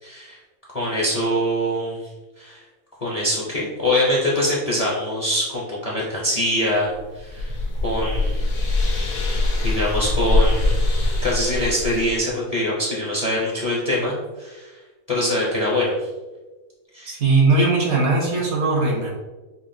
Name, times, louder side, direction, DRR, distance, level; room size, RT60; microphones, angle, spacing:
voice 1, 0.0-0.4 0.7-2.0 2.4-2.6 3.0-7.5 7.8-8.5 9.6-14.7 15.1-15.9 16.9-17.2, left 1 dB, 35° left, -5 dB, 0.6 m, -24 dB
sound 1, 6.9-12.3, left 2 dB, 90° left, 1.3 m, -22 dB
voice 2, 17.0-19.1, right 3 dB, 60° right, -2 dB, 1.0 m, -19 dB
5.7 x 2.3 x 2.6 m, 1.2 s
omnidirectional pair, 1.5 m